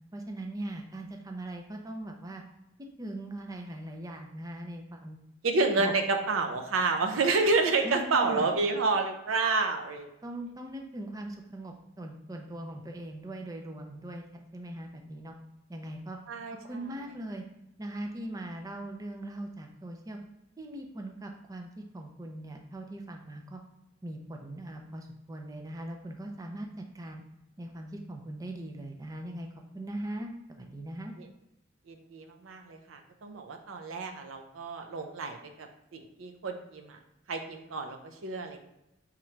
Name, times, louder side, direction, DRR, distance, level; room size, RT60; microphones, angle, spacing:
voice 1, 0.1-2.4 3.0-5.2 5.8-5.9 7.8-8.5 10.2-14.2 14.5-15.3 15.7-16.2 16.5-17.4 17.8-20.2 20.6-23.6 24.0-27.2 27.6-29.5 29.7-31.1, right 1 dB, 20° right, 3 dB, 0.4 m, -40 dB
voice 2, 5.4-10.1 16.3-16.6 31.2-31.3 31.9-37.0 37.3-38.6, right 3 dB, 85° right, 5 dB, 0.5 m, -29 dB
3.7 x 3.1 x 4.4 m, 0.89 s
head